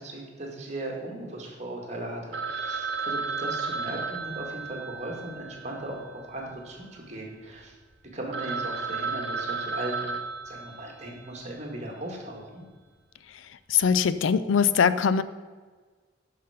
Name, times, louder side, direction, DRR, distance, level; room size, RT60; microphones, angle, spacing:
voice 1, 0.0-7.7 8.1-10.2 10.4-12.6, right 1 dB, 35° right, 0 dB, 2.0 m, -37 dB
Telephone, 2.3-6.7 6.9-7.0 7.6-7.7 8.0-8.1 8.3-11.3, right 4 dB, 65° right, 0.9 m, -33 dB
voice 2, 13.7-15.2, left 6 dB, 85° left, 15 dB, 0.4 m, -22 dB
11.0 x 5.8 x 5.0 m, 1.4 s
head